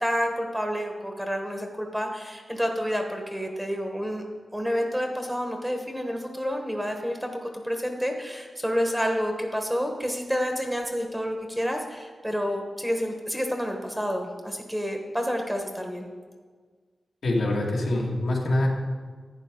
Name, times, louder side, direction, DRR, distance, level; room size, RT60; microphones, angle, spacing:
voice 1, 0.0-4.2 4.5-16.1, equal, 5° right, 3 dB, 1.2 m, -29 dB
voice 2, 17.2-18.7, left 1 dB, 75° left, -3 dB, 2.1 m, -24 dB
11.0 x 8.9 x 3.8 m, 1.6 s
wide cardioid pair, 85°, 0 cm